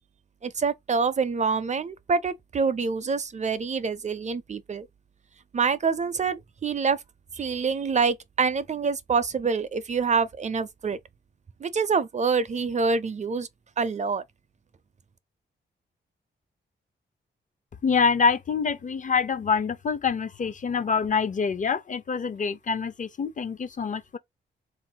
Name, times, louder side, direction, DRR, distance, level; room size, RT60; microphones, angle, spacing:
voice 1, 0.4-4.9 5.5-7.0 7.3-11.0 11.6-13.5 13.8-14.2, right 5 dB, 35° right, 0.5 m, -26 dB
voice 2, 17.8-24.2, left 5 dB, 40° left, 0.5 m, -26 dB
3.7 x 2.6 x 4.4 m
wide cardioid pair, 115°, 20 cm